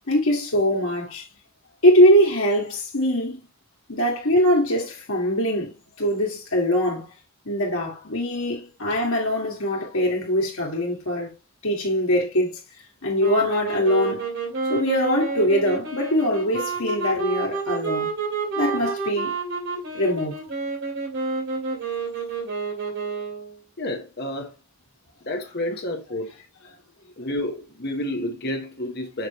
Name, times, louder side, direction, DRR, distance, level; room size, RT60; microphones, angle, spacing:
voice 1, 0.1-1.2 1.8-3.4 3.9-5.7 6.0-7.1 7.5-11.3 11.6-12.6 13.0-14.2 14.7-18.1 18.6-19.3 19.9-20.4, equal, 80° left, 2.1 m, -22 dB
sound 1, 13.2-23.6, right 4 dB, 60° right, 2.5 m, -29 dB
voice 2, 23.8-24.5 25.3-26.3 27.2-29.3, left 1 dB, 50° left, 1.2 m, -30 dB
6.5 x 5.0 x 3.1 m
head